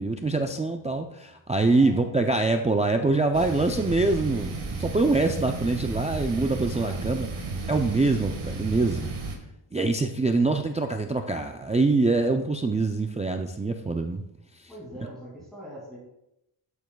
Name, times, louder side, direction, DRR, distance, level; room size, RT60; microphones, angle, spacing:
voice 1, 0.0-7.3 7.7-9.1 9.7-14.2, right 3 dB, 15° right, 4 dB, 0.3 m, -24 dB
voice 2, 1.7-2.2 6.7-7.3 14.7-16.0, equal, ahead, -8 dB, 2.4 m, -43 dB
sound 1, 3.3-9.4, right 3 dB, 85° right, 1.7 m, -33 dB
12.5 x 7.1 x 2.3 m, 0.85 s
wide cardioid pair, 120°, 49 cm